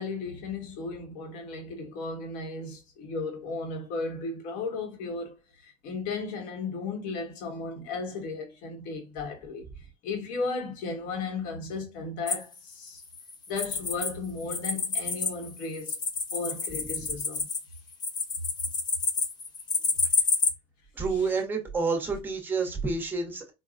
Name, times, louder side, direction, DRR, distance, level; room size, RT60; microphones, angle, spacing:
voice 1, 0.0-13.0 13.5-16.0 16.3-17.5, left 3 dB, 70° left, 1.3 m, -35 dB
sound 1, 12.3-14.1 14.4-20.5, left 4 dB, 30° left, 0.7 m, -29 dB
voice 2, 20.9-23.5, right 4 dB, 15° right, 1.1 m, -29 dB
4.6 x 2.2 x 2.5 m
cardioid pair, 150°, 14 cm